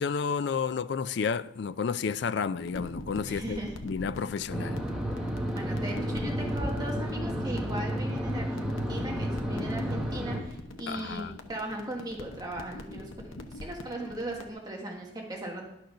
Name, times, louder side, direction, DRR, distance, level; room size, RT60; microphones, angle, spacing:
voice 1, 0.0-3.6 3.9-4.8 10.9-11.3, left 6 dB, 55° left, 0.3 m, -31 dB
sound 1, 2.6-14.5, left 1 dB, 80° left, 0.9 m, -43 dB
voice 2, 3.2-3.7 5.2-5.3 5.5-15.6, right 1 dB, 20° right, 1.4 m, -38 dB
sound 2, 4.5-10.4, equal, 5° right, 1.1 m, -31 dB
11.5 x 6.5 x 5.6 m
head